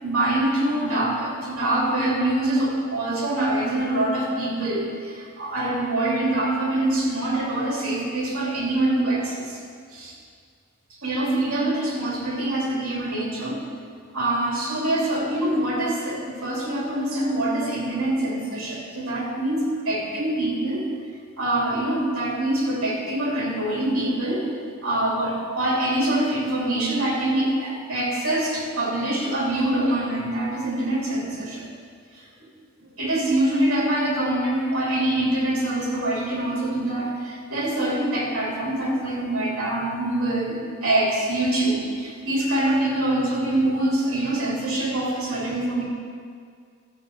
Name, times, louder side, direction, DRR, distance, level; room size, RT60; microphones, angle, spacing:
voice 1, 0.0-9.6 9.9-10.1 11.0-13.6 14.1-20.9 21.4-24.4 24.8-31.7 32.2-32.3 33.0-45.8, right 1 dB, 90° right, -4 dB, 3.1 m, -24 dB
12.5 x 8.1 x 4.8 m, 2.1 s
head